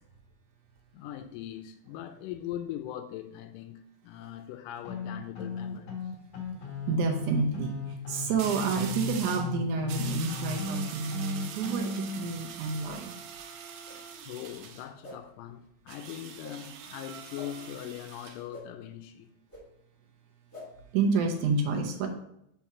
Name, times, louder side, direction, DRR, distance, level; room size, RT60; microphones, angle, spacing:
voice 1, 0.9-6.0 14.3-19.3, left 11 dB, 80° left, 2.0 m, -41 dB
sound 1, 4.8-12.3, left 4 dB, 50° left, 1.5 m, -36 dB
sound 2, 5.2-5.6 8.4-9.5 9.9-14.9 15.9-18.4, right 7 dB, 90° right, 2.5 m, -43 dB
voice 2, 6.8-13.2 20.9-22.1, right 4 dB, 70° right, 2.1 m, -29 dB
sound 3, 10.6-10.8 11.7-11.9 12.8-13.0 13.8-14.0 15.0-15.2 16.4-16.6 17.3-17.5 18.5-18.6 19.5-19.6 20.5-20.7, left 1 dB, 10° left, 1.1 m, -46 dB
5.6 x 4.4 x 5.9 m
omnidirectional pair, 4.1 m